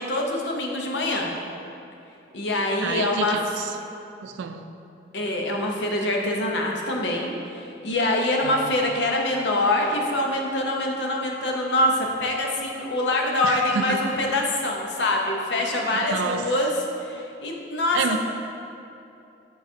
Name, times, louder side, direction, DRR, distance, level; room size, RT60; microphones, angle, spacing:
voice 1, 0.0-1.3 2.3-3.4 5.1-18.2, left 1 dB, 70° left, 0 dB, 0.7 m, -25 dB
voice 2, 2.8-3.7 4.2-4.7 8.4-8.6 13.4-14.0 16.0-16.5 17.9-18.2, right 6 dB, 80° right, 8 dB, 0.3 m, -29 dB
9.0 x 3.9 x 2.7 m, 2.7 s
head